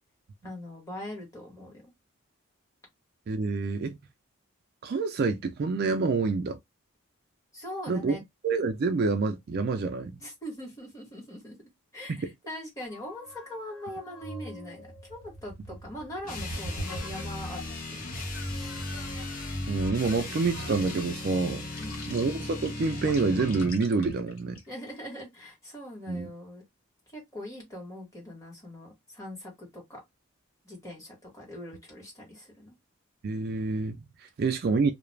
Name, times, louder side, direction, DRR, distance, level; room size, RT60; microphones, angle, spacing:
voice 1, 0.4-1.9 7.5-8.2 10.2-11.6 11.9-18.1 21.8-22.0 24.7-26.6 27.1-30.0 30.6-32.8, left 1 dB, 15° left, 1.1 m, -42 dB
voice 2, 3.3-4.0 4.8-6.6 7.9-8.2 8.4-10.2 12.1-12.3 19.7-21.7 22.1-24.6 26.1-26.3 33.2-34.9, right 4 dB, 45° right, 0.3 m, -27 dB
sound 1, 12.8-17.8 18.3-25.0, equal, 80° left, 0.8 m, -44 dB
sound 2, 16.2-23.8, left 2 dB, 40° left, 0.8 m, -36 dB
2.3 x 2.0 x 3.1 m
head